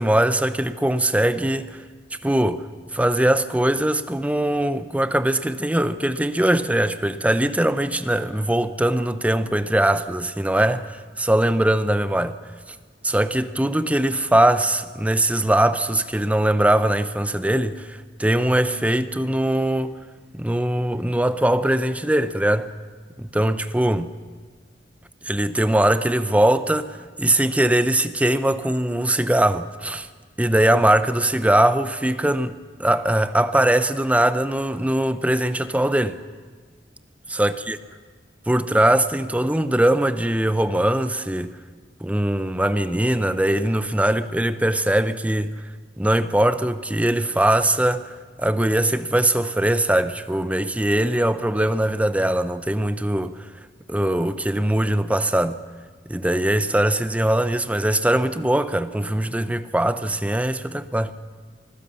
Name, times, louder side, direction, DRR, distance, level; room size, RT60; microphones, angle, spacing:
voice 1, 0.0-1.8 2.2-2.7 2.9-12.4 12.7-12.8 13.0-19.9 20.3-22.7 23.2-24.1 25.2-30.1 30.4-36.2 37.3-37.8 38.5-41.6 42.0-45.5 46.0-53.4 53.9-55.6 56.1-61.1, right 1 dB, 5° right, 0.7 m, -21 dB
25.0 x 15.5 x 7.0 m
head